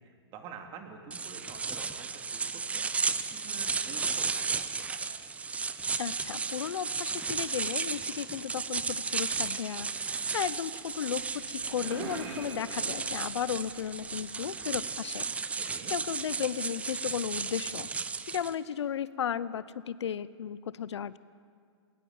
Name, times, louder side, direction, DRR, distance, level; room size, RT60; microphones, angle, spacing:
voice 1, 0.0-5.1 15.6-15.9, right 6 dB, 30° right, 4 dB, 2.5 m, -48 dB
sound 1, 1.1-18.5, right 5 dB, 10° right, 0.6 m, -34 dB
voice 2, 6.0-15.2 15.9-17.9 18.3-21.2, left 9 dB, 80° left, 18 dB, 0.7 m, -35 dB
sound 2, 10.8-14.4, right 4 dB, 55° right, 3.8 m, -44 dB
20.5 x 19.0 x 7.2 m, 2.1 s
hypercardioid pair, 135°, 14 cm